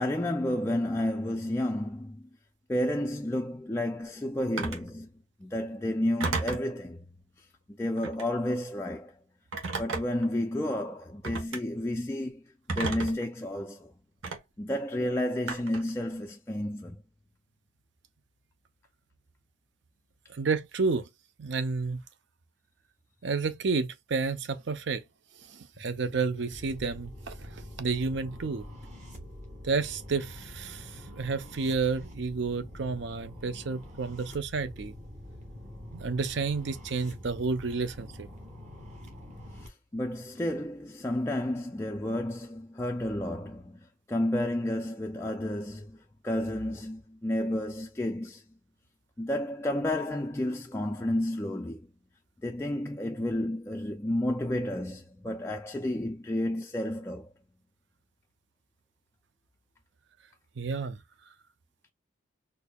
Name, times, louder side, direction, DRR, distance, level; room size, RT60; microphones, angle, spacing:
voice 1, 0.0-2.2 2.7-5.1 5.4-7.1 7.7-9.1 9.8-12.4 12.7-13.9 14.6-17.0 39.6-43.8 44.1-46.0 46.2-48.4 49.2-51.9 52.4-57.3, left 1 dB, 15° left, 0.3 m, -31 dB
Telephone, 4.6-4.9 6.2-6.7 8.0-8.3 9.5-10.3 11.2-11.6 12.7-13.2 14.2-14.4 15.5-15.9, right 3 dB, 85° right, 1.2 m, -32 dB
voice 2, 20.3-21.1 21.4-22.0 23.2-25.0 25.5-28.6 29.6-34.9 35.9-38.3 60.6-61.0, right 4 dB, 60° right, 0.5 m, -31 dB
sound 1, 26.5-39.7, left 1 dB, 35° right, 1.4 m, -45 dB
4.4 x 2.6 x 2.2 m
head